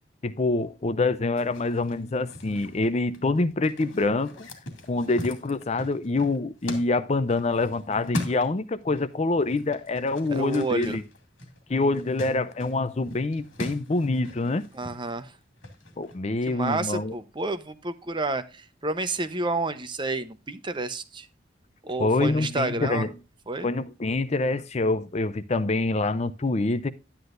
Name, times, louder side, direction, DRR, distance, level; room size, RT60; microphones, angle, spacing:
voice 1, 0.2-4.5 4.9-11.0 11.7-14.6 16.0-17.1 22.0-23.1 23.6-26.9, left 3 dB, 35° left, 0.5 m, -26 dB
sound 1, 1.4-9.1 9.3-16.2, left 1 dB, 80° left, 2.4 m, -40 dB
voice 2, 10.3-11.0 14.7-15.3 16.5-21.3 21.8-23.1 23.5-23.7, right 2 dB, 25° right, 0.8 m, -30 dB
11.0 x 9.8 x 2.5 m
head